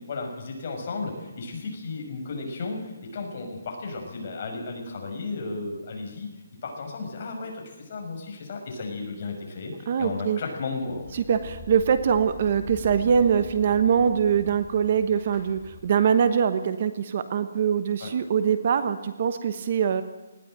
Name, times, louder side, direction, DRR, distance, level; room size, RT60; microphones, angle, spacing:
voice 1, 0.1-6.3 6.6-11.0 18.0-18.1, left 3 dB, 35° left, 1 dB, 5.9 m, -34 dB
voice 2, 9.9-10.4 11.1-20.0, right 7 dB, 35° right, 11 dB, 1.1 m, -23 dB
sound 1, 10.9-16.4, left 2 dB, 20° left, 3.5 m, -44 dB
20.0 x 15.5 x 9.0 m, 1.1 s
hypercardioid pair, 175°, 0 cm